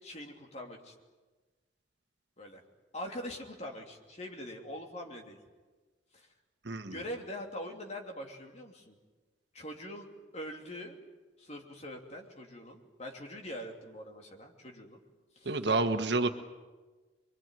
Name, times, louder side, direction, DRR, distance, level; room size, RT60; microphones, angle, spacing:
voice 1, 0.0-0.9 2.4-2.6 2.9-5.4 6.1-6.3 6.9-9.0 9.5-10.1 10.3-11.0 11.4-15.0 15.3-15.6, equal, 35° left, 2 dB, 2.9 m, -43 dB
voice 2, 6.6-7.0 15.4-16.3, right 3 dB, 60° right, 7 dB, 1.5 m, -29 dB
25.0 x 23.0 x 9.1 m, 1.3 s
head